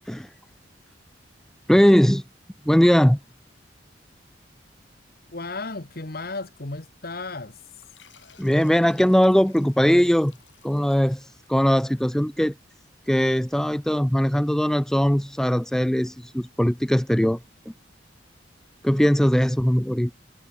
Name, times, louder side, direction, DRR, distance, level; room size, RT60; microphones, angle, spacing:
voice 1, 1.7-2.2 2.7-3.2 8.4-10.3 10.6-12.5 13.1-17.4 18.8-20.1, equal, 5° left, 0.4 m, -20 dB
voice 2, 5.3-7.6, left 3 dB, 55° left, 1.6 m, -34 dB
sound 1, 7.8-12.9, left 7 dB, 80° left, 7.3 m, -56 dB
head